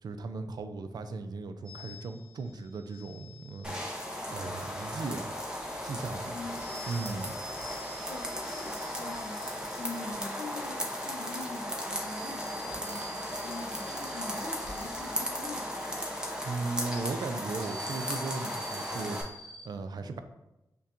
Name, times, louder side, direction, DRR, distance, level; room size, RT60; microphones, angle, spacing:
voice 1, 0.0-4.0 4.3-5.4 5.8-6.4 6.9-7.3 16.4-20.2, right 3 dB, 75° right, 8 dB, 0.3 m, -37 dB
sound 1, 1.6-19.7, equal, 55° right, 1.0 m, -50 dB
sound 2, 3.6-19.2, equal, 10° right, 0.7 m, -36 dB
voice 2, 6.2-7.2 8.1-16.0, left 3 dB, 65° left, 3 dB, 0.5 m, -44 dB
sound 3, 12.6-13.1 13.8-13.9 14.3-15.7 16.4-16.5 17.3-18.3, equal, 15° left, 1.2 m, -52 dB
5.3 x 2.3 x 2.5 m, 0.91 s
cardioid pair, 65°, 7 cm